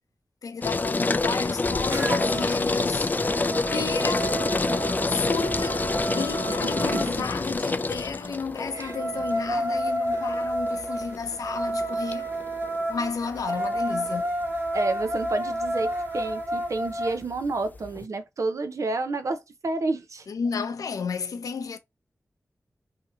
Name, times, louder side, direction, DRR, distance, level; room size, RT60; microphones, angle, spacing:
voice 1, 0.4-3.1 3.7-4.5 5.1-12.3 12.9-14.3 20.3-21.8, left 5 dB, 85° left, 0.5 m, -32 dB
sound 1, 0.6-18.1, left 3 dB, 30° left, 0.3 m, -28 dB
sound 2, 1.9-2.5 2.9-7.1 8.6-17.2, right 1 dB, 40° right, 1.0 m, -30 dB
voice 2, 6.6-7.2 8.7-8.9 14.7-20.3, right 3 dB, 65° right, 0.6 m, -30 dB
2.8 x 2.7 x 2.7 m
cardioid pair, 50°, 6 cm